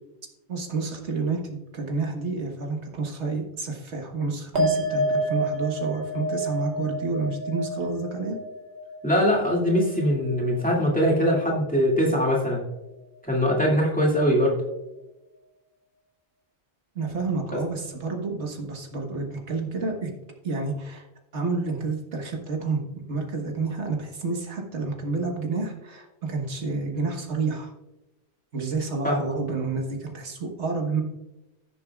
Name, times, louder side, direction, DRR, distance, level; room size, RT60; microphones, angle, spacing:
voice 1, 0.5-8.4 16.9-20.1 20.4-21.0 21.3-27.7 28.5-31.0, right 4 dB, 80° right, 2 dB, 1.6 m, -29 dB
sound 1, 4.6-11.2 11.5-12.2, right 1 dB, 60° right, 2.2 m, -30 dB
voice 2, 9.0-12.6 13.3-14.6 29.0-29.3, equal, 5° left, -3 dB, 2.2 m, -22 dB
16.0 x 7.0 x 2.3 m, 0.97 s
omnidirectional pair, 1.2 m